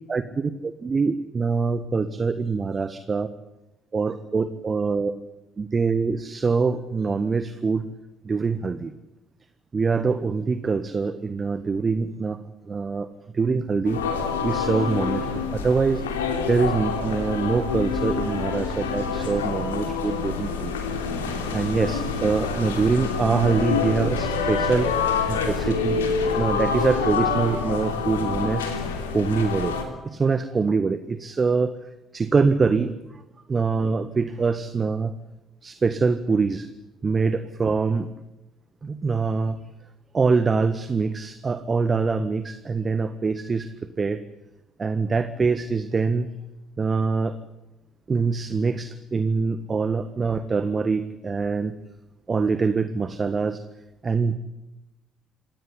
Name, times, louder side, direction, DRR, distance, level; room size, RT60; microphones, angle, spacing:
voice 1, 0.1-3.3 3.9-5.1 5.6-7.9 8.2-8.9 9.7-12.4 12.6-13.1 13.3-16.0 16.5-20.8 21.3-24.9 25.3-26.0 26.4-28.7 29.1-29.7 30.0-31.7 32.1-33.2 33.5-35.1 35.6-36.7 37.0-38.1 38.8-39.6 40.1-43.7 44.0-44.2 44.8-46.3 46.8-47.3 48.1-51.7 52.3-53.6 54.0-54.3, right 4 dB, 30° right, 12 dB, 1.5 m, -24 dB
sound 1, 13.8-29.8, left 5 dB, 75° left, 3.1 m, -26 dB
26.5 x 17.5 x 10.0 m, 1.0 s
figure-of-eight pair, 50°, 0 cm